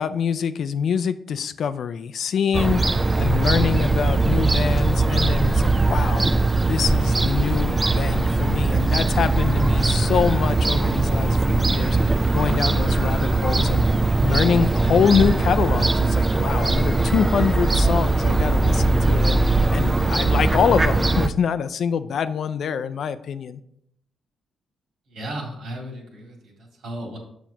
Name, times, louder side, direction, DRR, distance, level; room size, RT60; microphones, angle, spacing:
voice 1, 0.0-2.8 3.2-6.4 6.7-13.8 14.2-19.4 19.7-23.6, left 7 dB, 65° left, 12 dB, 0.4 m, -25 dB
Fowl / Gull seagull, 2.5-21.3, right 3 dB, 20° right, 0.4 m, -20 dB
sound 1, 7.8-17.7, equal, 5° left, 1.5 m, -39 dB
voice 2, 25.1-27.2, right 1 dB, 80° right, -1 dB, 2.3 m, -35 dB
7.1 x 6.0 x 2.9 m, 0.72 s
cardioid pair, 90°, 0 cm